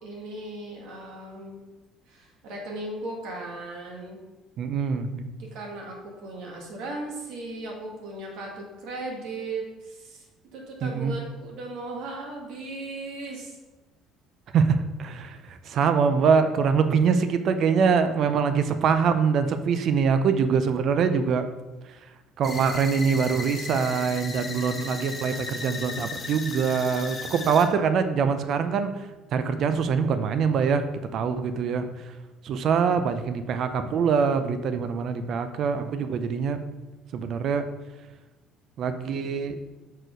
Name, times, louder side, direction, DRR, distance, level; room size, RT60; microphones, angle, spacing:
voice 1, 0.0-1.6 2.1-4.2 5.5-10.3 10.5-13.6, right 2 dB, 75° right, 0 dB, 1.8 m, -37 dB
voice 2, 4.6-5.3 10.8-11.1 14.5-21.5 22.4-28.9 29.3-30.9 31.1-31.9 32.4-36.6 37.1-37.7 38.8-39.6, right 6 dB, 50° right, 9 dB, 0.5 m, -24 dB
sound 1, 22.4-27.7, left 3 dB, 25° left, 1.1 m, -36 dB
6.3 x 4.4 x 5.1 m, 1.1 s
cardioid pair, 135°, 0 cm